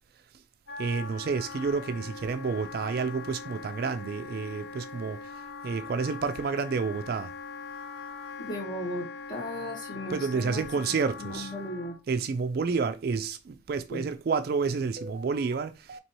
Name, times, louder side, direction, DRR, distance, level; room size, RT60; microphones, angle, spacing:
Wind instrument woodwind instrument, 0.7-12.0, left 4 dB, 60° left, 0.8 m, -42 dB
voice 1, 0.8-5.2 5.6-7.3 10.1-11.5 12.1-16.0, right 5 dB, 55° right, 0.3 m, -30 dB
voice 2, 8.4-12.0 13.9-14.1, left 1 dB, 25° left, 1.7 m, -37 dB
4.2 x 2.9 x 3.0 m
head